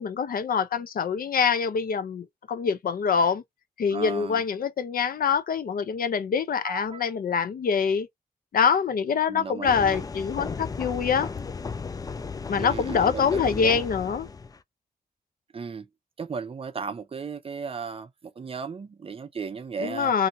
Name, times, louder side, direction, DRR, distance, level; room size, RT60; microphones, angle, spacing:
voice 1, 0.0-3.4 3.8-8.1 8.5-11.3 12.5-14.3 19.8-20.3, left 6 dB, 65° left, 0.6 m, -25 dB
voice 2, 3.9-4.4 6.6-7.0 9.3-10.1 12.6-13.8 15.5-15.9 16.2-20.1, right 5 dB, 35° right, 0.5 m, -35 dB
sound 1, 9.6-14.6, left 5 dB, 25° left, 0.3 m, -35 dB
2.7 x 2.7 x 2.6 m
cardioid pair, 95°, 16 cm